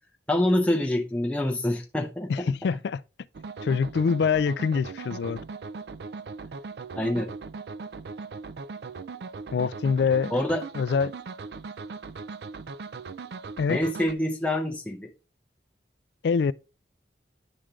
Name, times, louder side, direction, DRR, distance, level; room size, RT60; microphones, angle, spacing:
voice 1, 0.3-2.3 6.9-7.3 10.3-10.6 13.7-15.1, left 1 dB, 5° left, 0.5 m, -26 dB
voice 2, 2.3-3.0 3.6-5.4 9.5-10.3 10.7-11.1 13.6-13.8 16.2-16.5, left 5 dB, 70° left, 0.3 m, -25 dB
sound 1, 3.3-14.1, right 4 dB, 65° right, 0.4 m, -39 dB
10.0 x 3.7 x 3.1 m
head